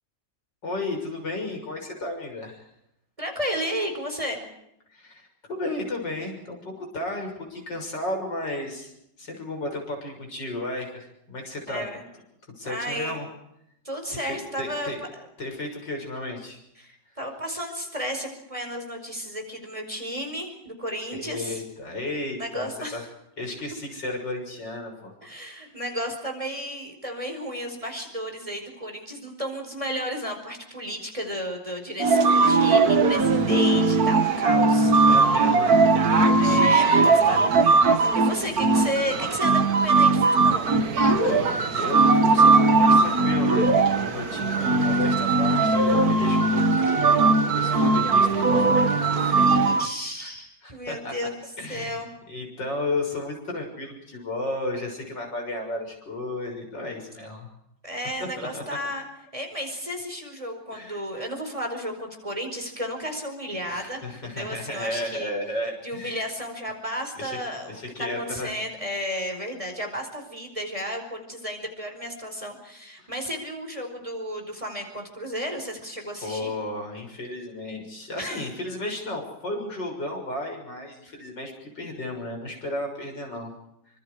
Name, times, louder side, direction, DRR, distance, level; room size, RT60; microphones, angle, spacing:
voice 1, 0.6-2.7 4.9-8.9 9.2-11.8 12.6-13.3 14.3-15.0 15.4-16.6 21.1-23.0 23.4-25.1 35.1-37.4 40.3-40.5 41.2-47.2 47.6-49.7 50.2-50.3 50.6-51.1 51.6-52.0 52.3-57.5 58.4-58.8 60.7-61.0 63.6-66.2 67.2-67.4 67.7-68.5 73.0-73.1 76.2-83.5, left 2 dB, 70° left, 2 dB, 7.3 m, -33 dB
voice 2, 3.2-4.4 11.7-12.0 12.6-13.2 13.8-15.3 16.8-21.6 22.4-23.1 25.2-34.9 36.4-40.7 49.4-51.4 51.7-52.1 57.8-59.1 59.3-65.3 65.8-76.5 78.2-78.4, equal, 15° right, 4 dB, 5.0 m, -33 dB
sound 1, 32.0-49.9, right 3 dB, 55° right, 2.0 m, -19 dB
28.0 x 25.5 x 5.0 m, 0.79 s
omnidirectional pair, 2.0 m